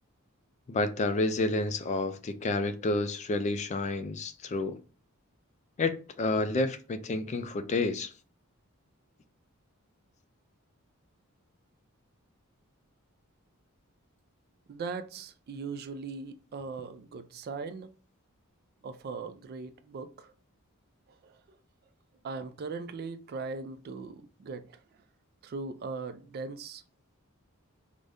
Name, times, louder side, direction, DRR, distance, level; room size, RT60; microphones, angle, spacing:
voice 1, 0.7-4.8 5.8-8.1, left 2 dB, 30° left, 0.3 m, -30 dB
voice 2, 14.7-17.9 18.8-20.3 21.2-21.4 22.2-24.8 25.4-26.8, right 4 dB, 45° right, 0.3 m, -39 dB
4.8 x 2.1 x 2.5 m
head